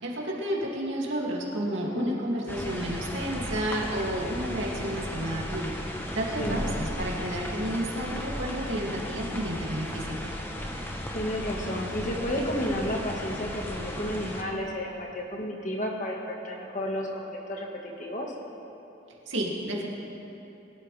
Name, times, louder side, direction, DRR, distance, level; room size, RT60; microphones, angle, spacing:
voice 1, 0.0-5.7 6.1-10.3 19.3-19.9, right 1 dB, 80° right, -3 dB, 2.5 m, -31 dB
sound 1, 2.5-14.4, equal, 10° left, 1.0 m, -35 dB
voice 2, 11.1-18.3, equal, 40° left, 0 dB, 1.6 m, -32 dB
22.5 x 12.5 x 3.4 m, 2.9 s
head